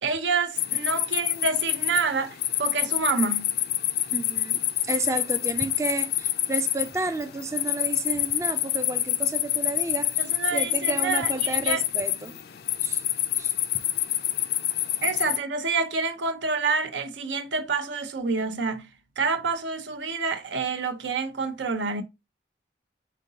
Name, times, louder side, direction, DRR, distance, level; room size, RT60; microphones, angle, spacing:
voice 1, 0.0-3.5 10.2-11.8 15.0-18.9 19.2-22.0, right 4 dB, 85° right, 0.7 m, -28 dB
sound 1, 0.6-15.4, left 13 dB, 55° left, 0.4 m, -27 dB
voice 2, 4.1-10.3 10.5-12.4 12.8-13.0 13.4-13.5, right 3 dB, 15° right, 0.3 m, -31 dB
5.1 x 3.7 x 2.8 m
head